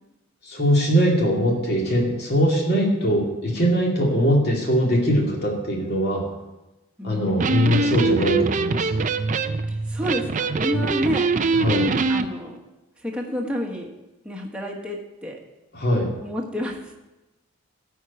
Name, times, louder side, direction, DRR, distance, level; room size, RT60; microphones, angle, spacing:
voice 1, 0.4-6.2 7.0-9.0 11.5-11.9 15.7-16.1, equal, 45° left, -1 dB, 2.5 m, -21 dB
voice 2, 7.0-7.8 9.7-11.7 12.1-12.6 13.0-13.9 14.2-15.4 16.2-16.9, equal, 5° right, -1 dB, 1.3 m, -30 dB
Electric guitar, 7.3-12.3, right 3 dB, 35° right, 0.4 m, -23 dB
12.5 x 4.7 x 8.4 m, 1.0 s
head